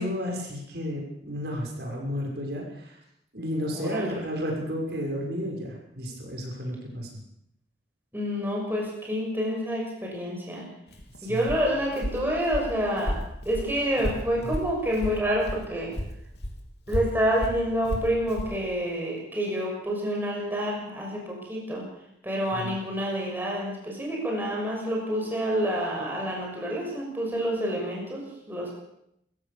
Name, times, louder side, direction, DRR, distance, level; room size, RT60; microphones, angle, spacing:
voice 1, 0.0-3.0 3.3-7.2 11.2-11.5 14.4-14.5 22.5-22.7, equal, 65° right, 0 dB, 6.3 m, -32 dB
voice 2, 3.7-4.2 8.1-10.6 11.2-13.2 13.4-15.9 16.9-21.8 22.2-28.7, equal, 10° right, -2 dB, 6.5 m, -28 dB
Walk footsteps, 10.9-15.7 15.9-18.6, equal, 65° left, 3.4 m, -33 dB
26.0 x 15.5 x 7.0 m, 0.78 s
head